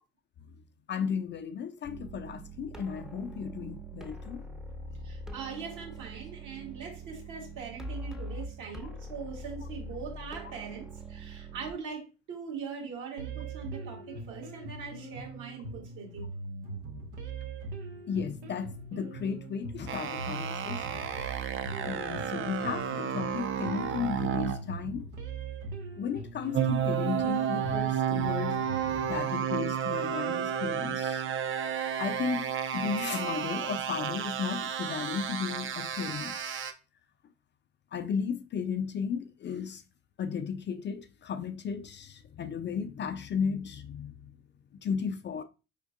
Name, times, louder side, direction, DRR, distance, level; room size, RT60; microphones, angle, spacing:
voice 1, 0.9-4.4 18.1-21.0 21.8-25.1 26.0-28.6 29.1-31.2 32.0-36.7 37.9-39.8 40.2-44.1 44.8-45.4, left 6 dB, 35° left, 0.4 m, -35 dB
sound 1, 1.8-11.7, right 1 dB, ahead, 0.7 m, -43 dB
voice 2, 5.0-16.3, right 6 dB, 60° right, 1.9 m, -41 dB
sound 2, 13.2-29.2, right 3 dB, 80° right, 0.9 m, -41 dB
sound 3, 19.9-24.6 26.5-36.7, right 9 dB, 35° right, 0.6 m, -32 dB
5.0 x 3.6 x 2.5 m
hypercardioid pair, 65°, 34 cm